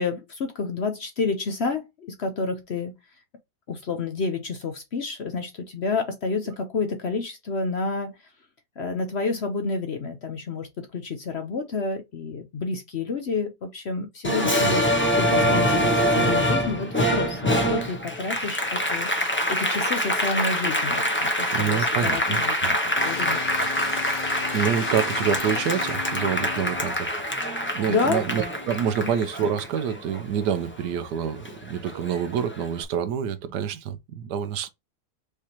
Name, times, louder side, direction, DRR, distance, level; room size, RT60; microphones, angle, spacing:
voice 1, 0.0-2.9 3.7-8.3 8.8-14.9 15.2-23.4 27.5-28.2 29.0-29.1, left 4 dB, 50° left, 0.8 m, -29 dB
Applause, 14.2-31.1 31.5-32.6, equal, 10° left, 0.6 m, -25 dB
voice 2, 21.5-22.7 24.5-27.2 27.7-34.7, right 8 dB, 80° right, 1.3 m, -27 dB
sound 1, 23.0-26.9, left 8 dB, 85° left, 1.3 m, -36 dB
4.9 x 3.3 x 2.8 m
omnidirectional pair, 1.8 m